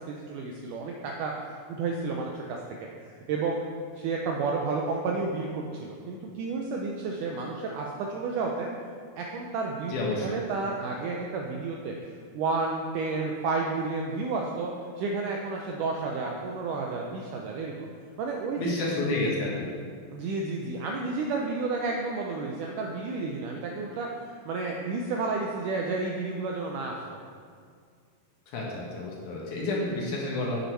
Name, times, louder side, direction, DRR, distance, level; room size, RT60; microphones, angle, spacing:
voice 1, 0.1-2.6 3.0-3.6 4.0-8.7 9.1-10.0 10.2-17.7 18.2-18.8 20.1-27.2, right 3 dB, 85° right, 0 dB, 1.8 m, -31 dB
voice 2, 9.9-10.4 18.6-19.7 28.5-30.6, left 2 dB, 60° left, -4 dB, 2.5 m, -30 dB
8.5 x 8.1 x 4.6 m, 2.1 s
omnidirectional pair, 4.4 m